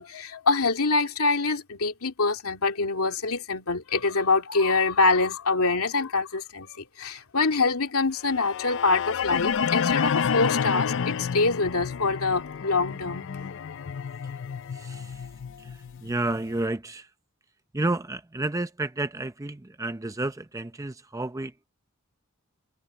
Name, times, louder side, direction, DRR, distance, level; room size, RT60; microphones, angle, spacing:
voice 1, 0.0-13.5, left 3 dB, 80° left, 2.4 m, -25 dB
sound 1, 8.3-16.4, left 6 dB, 60° left, 0.5 m, -29 dB
voice 2, 14.7-15.3 15.6-17.1 17.7-21.6, right 2 dB, 15° right, 0.6 m, -31 dB
head